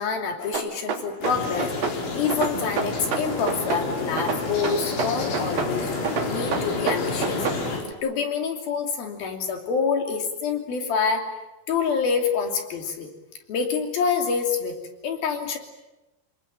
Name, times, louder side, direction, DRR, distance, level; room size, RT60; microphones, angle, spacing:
voice 1, 0.0-5.9 6.3-7.4 8.0-11.3 11.7-13.1 13.5-15.6, left 5 dB, 55° left, 4 dB, 4.4 m, -27 dB
sound 1, 0.5-2.0 2.3-3.9 4.2-5.7 6.0-7.6, right 6 dB, 50° right, 4.1 m, -28 dB
sound 2, 1.2-7.8, left 3 dB, 75° left, 7.1 m, -29 dB
27.5 x 20.5 x 9.1 m, 1.0 s
omnidirectional pair, 5.6 m